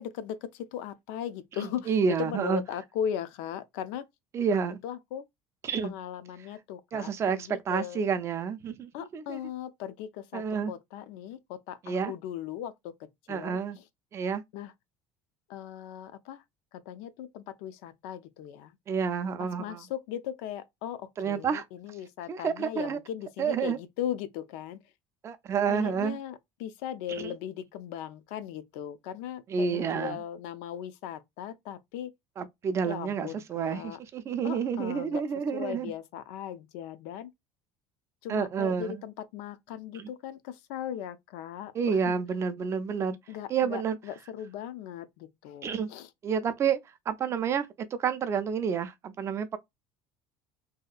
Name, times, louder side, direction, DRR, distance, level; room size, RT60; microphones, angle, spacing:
voice 1, 0.0-4.0 4.5-4.6 4.8-5.3 5.8-8.0 8.9-12.9 13.3-13.8 14.5-14.7 15.5-16.4 16.7-18.8 19.4-24.8 25.7-32.1 32.9-34.0 34.4-35.2 35.5-37.3 38.2-42.1 43.3-46.1, left 10 dB, 80° left, 0.4 m, -38 dB
voice 2, 1.6-2.6 4.3-4.8 5.6-5.9 6.9-9.4 10.3-10.7 11.8-12.1 13.3-13.8 14.1-14.4 18.9-19.8 21.2-21.6 22.3-23.0 23.4-23.8 25.2-26.2 27.2-27.3 29.5-30.2 32.4-35.9 38.3-39.0 40.0-40.1 41.7-43.2 43.5-44.0 45.6-45.9 46.2-46.8 47.1-49.6, right 6 dB, 30° right, 0.3 m, -29 dB
2.7 x 2.2 x 2.3 m
cardioid pair, 145°, 10 cm